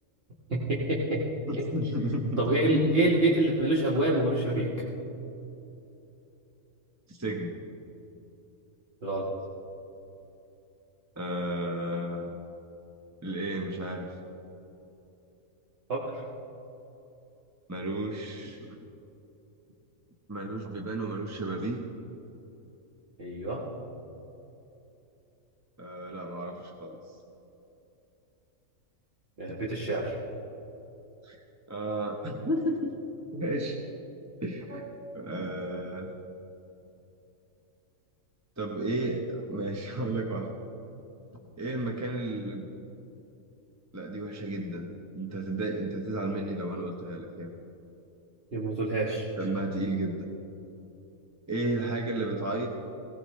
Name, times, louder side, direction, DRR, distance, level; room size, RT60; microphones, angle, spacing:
voice 1, 0.5-1.2 1.6-1.7 2.4-4.7 9.0-9.3 15.9-16.2 23.2-23.6 29.4-30.2 48.5-49.3, right 1 dB, 45° right, -6 dB, 1.7 m, -26 dB
voice 2, 1.5-2.4 7.1-7.6 11.2-12.3 13.2-14.1 17.7-18.8 20.3-21.8 25.8-27.2 31.2-31.4 31.7-33.0 33.3-33.8 34.4-36.1 38.6-40.5 41.3-42.6 43.9-47.5 49.4-50.3 51.5-52.7, right 1 dB, 15° right, 1 dB, 0.8 m, -33 dB
18.5 x 17.0 x 3.2 m, 3.0 s
omnidirectional pair, 1.4 m